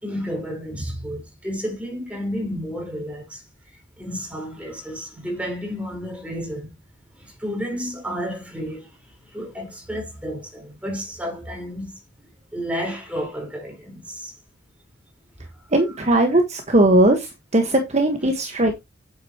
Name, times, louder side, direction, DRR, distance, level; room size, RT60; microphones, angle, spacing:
voice 1, 0.0-3.4 4.0-6.8 7.2-8.9 9.3-12.0 12.5-14.3 17.6-17.8, equal, 5° right, 4.3 m, -31 dB
voice 2, 15.7-18.8, right 1 dB, 40° right, 1.4 m, -19 dB
9.0 x 7.8 x 2.9 m
head